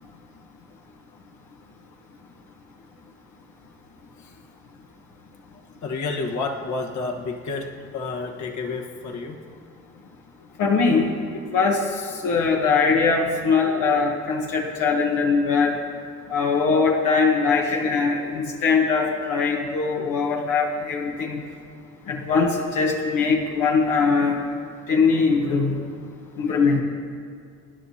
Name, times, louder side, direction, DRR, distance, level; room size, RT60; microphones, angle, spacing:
voice 1, 5.8-9.4, left 3 dB, 70° left, 1 dB, 1.3 m, -30 dB
voice 2, 10.6-11.1 11.5-15.7 16.3-21.4 22.1-24.4 24.9-25.8 26.4-26.8, left 4 dB, 90° left, 0 dB, 1.2 m, -21 dB
25.0 x 10.5 x 2.8 m, 2.2 s
cardioid pair, 90°, 30 cm